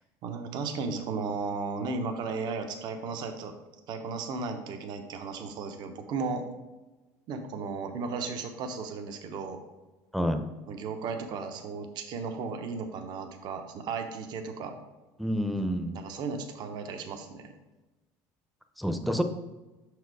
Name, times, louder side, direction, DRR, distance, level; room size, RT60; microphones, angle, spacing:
voice 1, 0.2-3.5 3.9-6.4 7.3-9.6 10.7-14.8 15.9-17.5, right 4 dB, 55° right, 6 dB, 0.9 m, -35 dB
voice 2, 15.2-15.9 18.8-19.2, equal, ahead, 6 dB, 0.7 m, -28 dB
6.1 x 4.7 x 4.8 m, 1.1 s
supercardioid pair, 105°, 9 cm